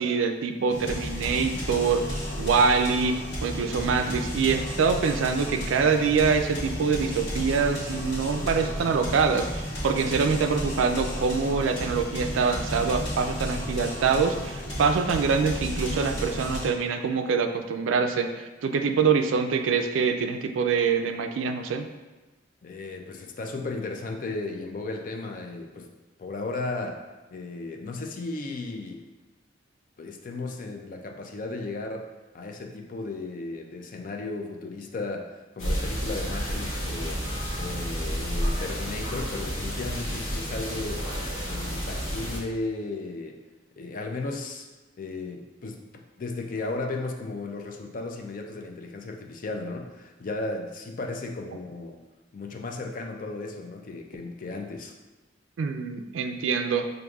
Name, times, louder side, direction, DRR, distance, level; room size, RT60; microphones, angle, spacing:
voice 1, 0.0-9.5 9.8-21.9 55.6-56.9, right 5 dB, 80° right, 6 dB, 0.3 m, -25 dB
sound 1, 0.7-16.7, equal, 60° left, 1.1 m, -33 dB
voice 2, 22.6-25.9 26.2-27.0 27.3-29.0 30.0-32.1 32.3-37.2 37.6-41.1 41.5-43.4 43.8-44.7 45.0-45.8 46.2-52.0 52.3-54.9, left 3 dB, 45° left, 3 dB, 0.4 m, -35 dB
sound 2, 35.6-42.4, equal, 85° left, 1.1 m, -30 dB
6.0 x 2.6 x 2.3 m, 1.2 s
head